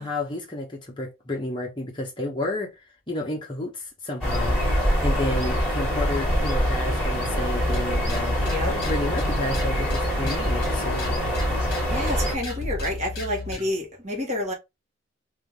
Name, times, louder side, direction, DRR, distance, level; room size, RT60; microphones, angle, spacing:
voice 1, 0.0-2.7 3.1-4.6 5.0-11.1, left 2 dB, 25° left, 1.2 m, -31 dB
sound 1, 4.2-12.3, equal, ahead, 2.6 m, -24 dB
sound 2, 7.5-13.7, left 2 dB, 50° left, 1.8 m, -33 dB
voice 2, 8.4-8.8 11.9-14.5, left 1 dB, 35° right, 1.5 m, -29 dB
3.6 x 2.9 x 3.5 m
head